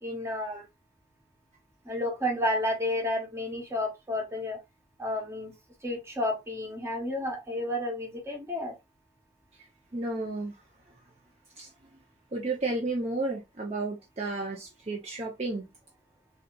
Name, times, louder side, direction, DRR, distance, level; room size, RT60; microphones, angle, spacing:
voice 1, 0.0-0.6 1.8-4.6 5.0-5.5 5.8-8.7, left 1 dB, 15° right, 0.8 m, -31 dB
voice 2, 9.9-10.5 11.6-11.7 12.3-15.7, right 2 dB, 35° right, 0.5 m, -32 dB
3.5 x 2.7 x 2.2 m
head